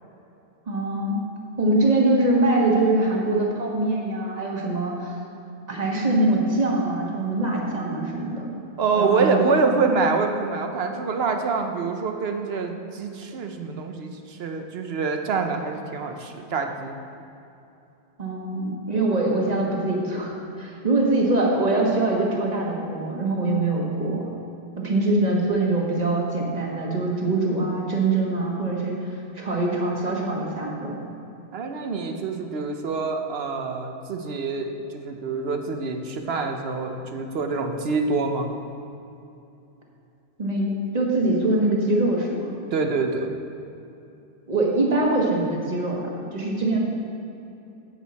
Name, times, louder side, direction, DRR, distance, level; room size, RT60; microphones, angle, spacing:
voice 1, 0.7-1.2 1.6-5.1 5.7-8.5 9.0-9.7 18.2-24.3 24.8-31.1 40.4-42.5 44.5-46.8, right 2 dB, 40° right, -2 dB, 1.5 m, -23 dB
voice 2, 8.8-17.0 31.5-34.7 34.9-38.5 42.7-43.3, right 4 dB, 70° right, 4 dB, 1.0 m, -26 dB
10.5 x 8.2 x 4.1 m, 2.8 s
omnidirectional pair, 1.1 m